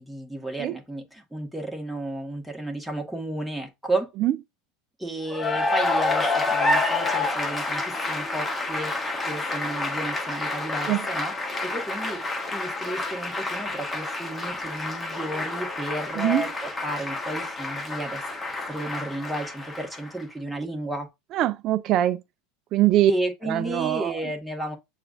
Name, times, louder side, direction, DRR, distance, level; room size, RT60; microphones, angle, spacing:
voice 1, 0.0-4.1 5.0-18.2 18.7-21.1 23.1-24.8, right 1 dB, 5° right, 1.4 m, -32 dB
Cheering / Applause, 5.3-20.2, left 2 dB, 15° left, 1.1 m, -28 dB
voice 2, 21.3-22.2 22.7-23.1 23.5-24.2, right 13 dB, 50° right, 0.4 m, -22 dB
6.7 x 2.4 x 2.5 m
hypercardioid pair, 90°, 0 cm